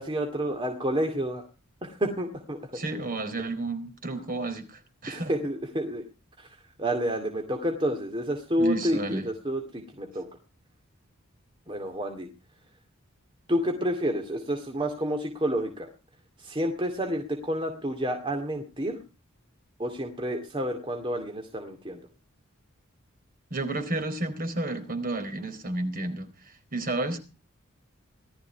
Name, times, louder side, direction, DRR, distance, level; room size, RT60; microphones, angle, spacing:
voice 1, 0.0-1.4 1.8-2.8 5.1-6.0 6.4-6.5 6.8-10.3 11.7-12.3 13.5-15.9 16.4-19.0 19.8-22.1, equal, 25° right, 4 dB, 2.3 m, -29 dB
voice 2, 2.7-5.3 8.6-9.3 23.5-27.2, right 2 dB, 40° right, 8 dB, 4.1 m, -31 dB
19.0 x 13.5 x 4.6 m, 0.32 s
head